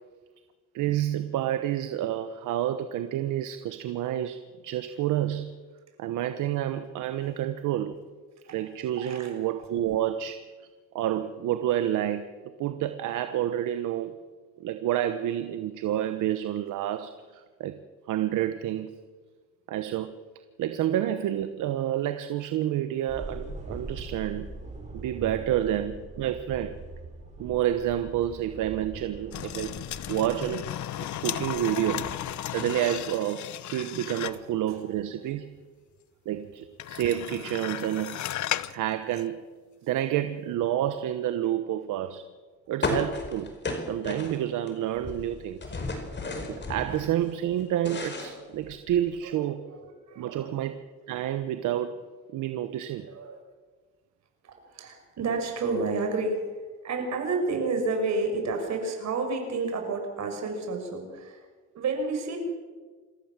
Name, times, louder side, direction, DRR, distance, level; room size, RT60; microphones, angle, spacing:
voice 1, 0.7-5.6 6.0-8.0 8.5-10.4 10.9-14.1 14.6-17.8 18.1-18.9 19.7-20.1 20.6-24.5 24.9-26.8 27.4-29.7 30.1-30.7 31.2-32.1 32.5-35.5 36.2-38.2 38.7-39.4 39.8-42.2 42.7-43.5 43.9-45.7 46.5-49.7 50.2-50.8 51.1-52.0 52.3-53.1, right 11 dB, 85° right, 10 dB, 1.1 m, -29 dB
voice 2, 9.0-9.3 34.7-34.8 45.9-46.0 49.2-49.3 49.6-50.5 53.0-53.4 54.4-56.4 56.8-61.4 61.7-62.4, right 3 dB, 65° right, 4 dB, 6.1 m, -30 dB
sound 1, 23.1-32.2, right 2 dB, 25° right, 6.4 m, -42 dB
sound 2, 29.3-34.5 36.8-38.8 39.1-39.2, left 13 dB, 70° left, 0.9 m, -35 dB
sound 3, 42.8-44.7 45.0-47.1 47.5-49.1, left 2 dB, 35° left, 5.0 m, -33 dB
27.0 x 15.0 x 7.4 m, 1.4 s
cardioid pair, 90°, 30 cm